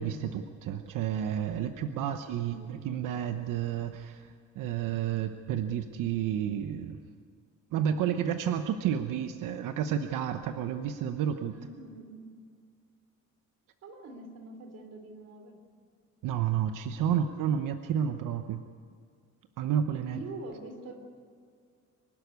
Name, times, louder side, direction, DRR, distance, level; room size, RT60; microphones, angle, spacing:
voice 1, 0.0-7.0 7.7-11.5 16.2-18.6 19.6-20.2, right 9 dB, 85° right, 7 dB, 1.0 m, -31 dB
voice 2, 2.4-2.7 9.7-9.8 11.5-12.3 13.8-15.6 17.1-17.2 20.1-20.9, right 2 dB, 55° right, 5 dB, 3.2 m, -44 dB
24.5 x 12.0 x 9.5 m, 2.1 s
cardioid pair, 180°, 31 cm